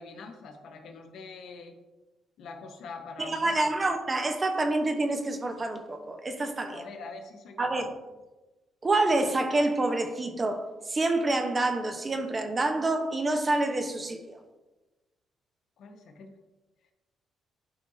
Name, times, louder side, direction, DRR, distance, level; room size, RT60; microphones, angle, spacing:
voice 1, 0.0-1.7 2.4-3.7 6.7-7.9 15.8-16.4, left 4 dB, 75° left, 4 dB, 1.2 m, -44 dB
voice 2, 3.2-6.8 7.6-7.9 8.8-14.4, right 2 dB, 30° right, 6 dB, 1.0 m, -27 dB
11.5 x 4.9 x 2.8 m, 1.1 s
cardioid pair, 90°, 0 cm